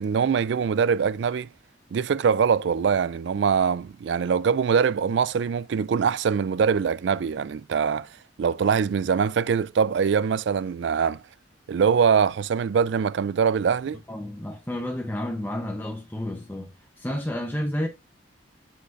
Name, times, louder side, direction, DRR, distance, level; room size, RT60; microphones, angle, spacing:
voice 1, 0.0-1.5 1.9-11.2 11.7-14.0, right 6 dB, 65° right, 0.3 m, -23 dB
voice 2, 14.1-17.9, left 1 dB, 10° left, 0.8 m, -31 dB
8.1 x 5.8 x 2.6 m
head